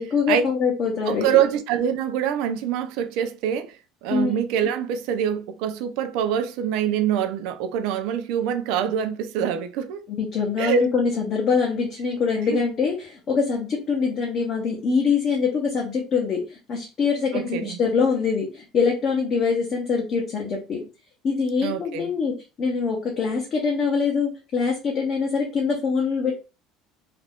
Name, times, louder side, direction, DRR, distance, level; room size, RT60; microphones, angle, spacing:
voice 1, 0.0-1.3 4.1-4.4 10.1-20.8 21.2-26.3, left 5 dB, 30° left, 0.6 m, -24 dB
voice 2, 1.1-3.8 4.0-10.1 10.6-10.9 12.5-12.6 17.3-17.8 21.6-22.1, right 9 dB, 60° right, 0.4 m, -25 dB
2.4 x 2.2 x 3.4 m
cardioid pair, 175°, 0 cm